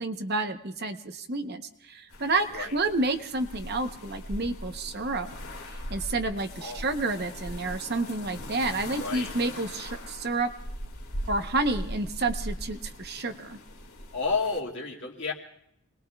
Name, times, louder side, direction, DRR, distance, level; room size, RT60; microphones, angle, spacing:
voice 1, 0.0-5.3 5.7-10.5 11.3-13.6, right 2 dB, 45° right, 7 dB, 0.9 m, -30 dB
sound 1, 2.1-14.6, equal, 75° left, 2.1 m, -40 dB
voice 2, 9.0-9.3 14.1-15.3, left 4 dB, 55° left, -1 dB, 2.4 m, -31 dB
28.5 x 20.5 x 2.3 m, 0.76 s
head